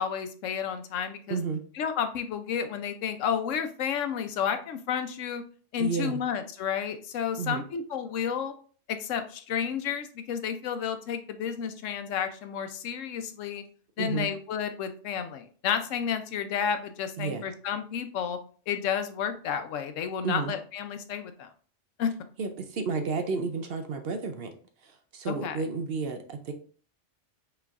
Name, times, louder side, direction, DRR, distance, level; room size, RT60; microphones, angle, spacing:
voice 1, 0.0-1.4 1.8-5.4 5.7-8.5 8.9-13.6 14.0-18.4 18.7-21.5 22.0-22.1 25.4-25.6, left 8 dB, 90° left, 8 dB, 1.0 m, -31 dB
voice 2, 1.3-1.6 5.8-6.2 7.4-7.6 14.0-14.3 17.2-17.5 20.2-20.5 22.4-24.5 24.8-26.5, right 4 dB, 60° right, 6 dB, 0.8 m, -31 dB
5.8 x 3.4 x 2.4 m, 0.42 s
omnidirectional pair, 1.3 m